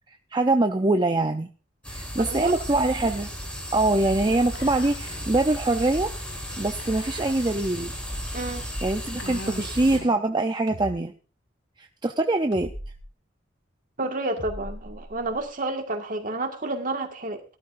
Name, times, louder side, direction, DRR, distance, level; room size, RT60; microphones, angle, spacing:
voice 1, 0.1-1.5 1.9-3.3 3.7-6.1 6.6-7.9 8.8-11.1 11.8-12.7, right 2 dB, 25° right, 6 dB, 0.6 m, -24 dB
sound 1, 1.8-10.0, equal, 5° left, 4.7 m, -34 dB
voice 2, 2.2-2.6 8.3-8.7 14.0-17.4, right 2 dB, 45° right, 4 dB, 1.8 m, -30 dB
Whispering, 4.5-5.3 5.5-5.6 6.8-7.6 8.3-8.4 9.2-10.4, left 2 dB, 60° left, 1.2 m, -41 dB
sound 2, 10.7-10.9 12.5-13.1 14.4-15.5, equal, 80° right, 3.7 m, -39 dB
18.0 x 12.5 x 2.6 m, 0.35 s
head